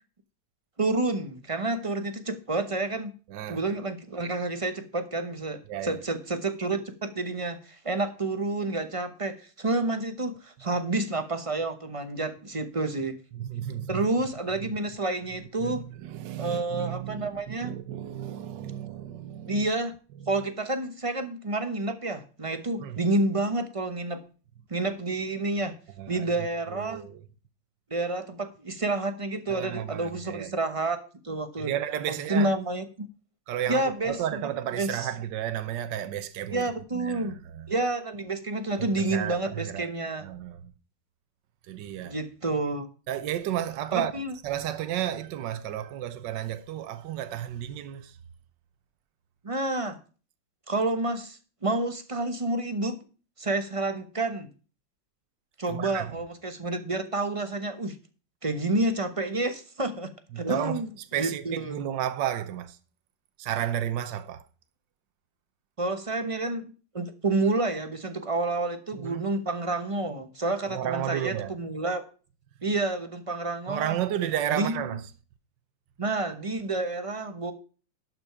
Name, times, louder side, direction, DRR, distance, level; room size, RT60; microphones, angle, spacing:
voice 1, 0.8-3.1 3.5-13.1 13.9-15.8 16.4-17.7 19.5-19.9 20.3-24.2 24.7-25.7 26.1-27.1 27.9-31.7 32.3-33.1 33.7-34.4 34.8-35.1 36.5-37.3 37.7-40.2 42.0-42.9 43.9-44.3 49.4-50.0 50.7-53.0 53.4-54.5 55.6-58.0 58.4-60.1 60.4-60.9 61.2-61.8 65.8-72.0 72.6-73.9 74.5-74.8 76.0-77.5, right 2 dB, 25° right, 0.8 m, -29 dB
voice 2, 3.3-3.6 5.7-6.0 13.3-14.0 14.6-14.7 15.6-19.7 20.2-20.3 22.8-23.0 26.0-26.3 26.7-27.2 29.5-30.6 31.6-32.5 33.5-37.7 38.8-39.9 40.2-40.7 41.6-42.2 43.1-44.1 44.4-48.2 55.7-56.2 60.3-62.8 63.4-64.4 68.9-69.3 70.7-71.5 73.7-75.1, right 11 dB, 75° right, 1.5 m, -33 dB
11.5 x 6.2 x 5.7 m
omnidirectional pair, 2.0 m